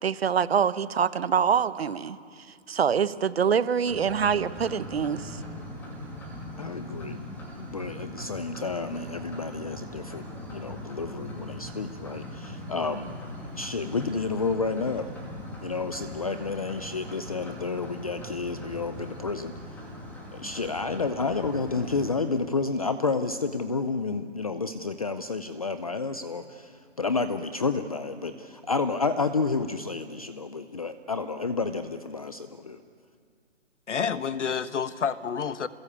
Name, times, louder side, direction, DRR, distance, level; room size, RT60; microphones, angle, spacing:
voice 1, 0.0-2.2 2.7-5.4, right 7 dB, 55° right, 14 dB, 1.1 m, -25 dB
sound 1, 3.9-22.1, left 1 dB, 5° left, 2.3 m, -40 dB
voice 2, 6.6-7.2 7.6-13.2 13.5-15.1 15.6-19.5 20.3-32.8, left 4 dB, 30° left, 11 dB, 0.6 m, -30 dB
voice 3, 33.9-35.7, left 6 dB, 70° left, 13 dB, 1.4 m, -29 dB
27.0 x 21.0 x 8.5 m, 2.3 s
hypercardioid pair, 170°, 37 cm